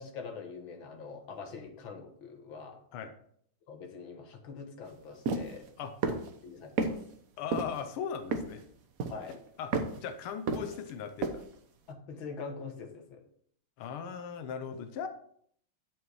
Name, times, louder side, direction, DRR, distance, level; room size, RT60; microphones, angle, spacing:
voice 1, 0.0-2.8 3.7-5.7 6.1-7.0 9.1-9.4 11.9-13.2, left 5 dB, 70° left, 4 dB, 2.0 m, -44 dB
sound 1, 5.3-5.5 6.0-6.3 6.8-6.9 7.5-7.8 8.3-8.6 9.0-9.3 9.7-10.0 10.5-10.9 11.2-11.4, right 4 dB, 55° right, 1.1 m, -30 dB
voice 2, 7.4-8.6 9.6-11.4 13.8-15.1, left 7 dB, 90° left, 8 dB, 1.7 m, -38 dB
11.0 x 5.5 x 4.7 m, 0.64 s
omnidirectional pair, 2.3 m